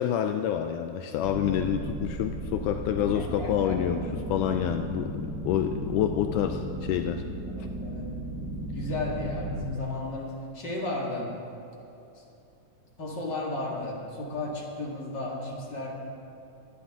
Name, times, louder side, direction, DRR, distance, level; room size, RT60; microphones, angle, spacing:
voice 1, 0.0-4.0 4.3-7.2, left 10 dB, 85° left, 6 dB, 1.8 m, -28 dB
Dark space drone, 1.2-9.6, right 1 dB, 30° right, 1.5 m, -35 dB
voice 2, 3.1-3.8 7.6-8.1 8.7-11.4 12.1-12.2 13.0-15.9, left 2 dB, 35° left, -3 dB, 2.1 m, -34 dB
24.5 x 9.8 x 3.7 m, 2.9 s
omnidirectional pair, 4.2 m